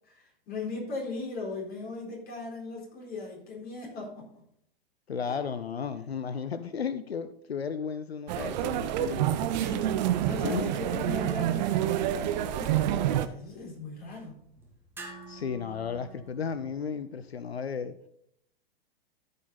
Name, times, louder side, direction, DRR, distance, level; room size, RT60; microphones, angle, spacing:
voice 1, 0.1-4.4 8.8-14.5, left 3 dB, 30° left, -1 dB, 4.0 m, -39 dB
voice 2, 5.1-9.4 10.4-10.7 15.3-17.9, left 6 dB, 90° left, 12 dB, 0.6 m, -34 dB
sound 1, 8.3-13.3, right 11 dB, 45° right, 0.8 m, -28 dB
sound 2, 14.0-16.8, right 3 dB, 5° right, 1.9 m, -51 dB
13.5 x 5.3 x 4.1 m, 0.71 s
figure-of-eight pair, 105°, 30 cm